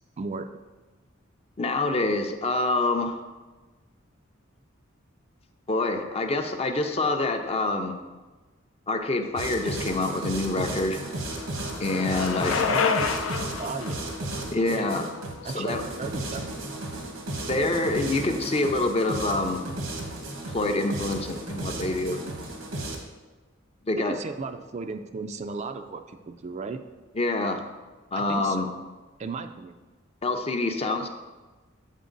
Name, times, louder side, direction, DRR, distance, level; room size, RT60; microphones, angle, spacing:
voice 1, 0.2-0.5 12.7-13.1 13.6-14.1 14.4-14.9 15.4-16.6 24.0-26.8 28.1-28.7 29.2-29.8, right 4 dB, 35° right, 7 dB, 0.3 m, -35 dB
voice 2, 1.6-3.2 5.7-8.0 8.9-11.0 11.8-12.6 14.5-15.1 15.4-15.8 17.5-19.7 20.5-22.2 23.9-24.2 27.2-27.6 28.1-28.7 30.2-31.1, left 2 dB, 30° left, 6 dB, 0.5 m, -26 dB
sound 1, 9.4-23.0, right 1 dB, 85° right, 1.1 m, -34 dB
Bicycle, 10.2-16.2, left 5 dB, 85° left, 0.5 m, -30 dB
8.2 x 4.3 x 3.9 m, 1.2 s
head